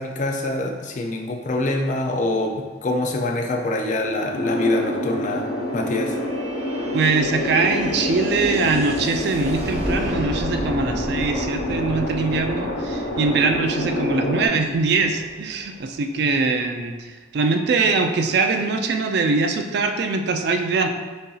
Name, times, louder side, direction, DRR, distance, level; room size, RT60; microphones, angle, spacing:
voice 1, 0.0-6.2, left 2 dB, 40° left, 3 dB, 0.4 m, -25 dB
sound 1, 3.3-16.8, equal, 35° right, 0.8 m, -35 dB
sound 2, 4.3-14.5, left 1 dB, 85° left, 0.6 m, -27 dB
voice 2, 6.9-20.9, right 4 dB, 60° right, 5 dB, 0.4 m, -22 dB
6.4 x 2.7 x 2.3 m, 1.3 s
head